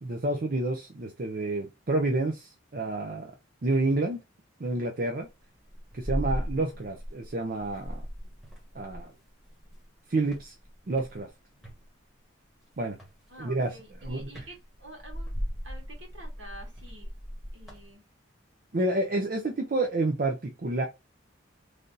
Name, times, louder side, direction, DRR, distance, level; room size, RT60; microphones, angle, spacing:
voice 1, 0.0-3.3 3.6-4.2 4.6-5.3 5.9-8.0 8.7-9.1 10.1-10.5 10.9-11.3 12.8-13.0 13.4-13.7 14.0-14.3 18.7-20.8, right 2 dB, 45° right, 0.5 m, -29 dB
sound 1, 5.3-7.3 7.6-9.8 10.2-11.8 12.9-13.2 13.6-17.9, equal, ahead, 1.3 m, -37 dB
voice 2, 11.5-11.9 13.3-15.3 15.6-17.1 17.5-18.0, right 1 dB, 70° right, 1.8 m, -49 dB
3.3 x 2.6 x 3.8 m
head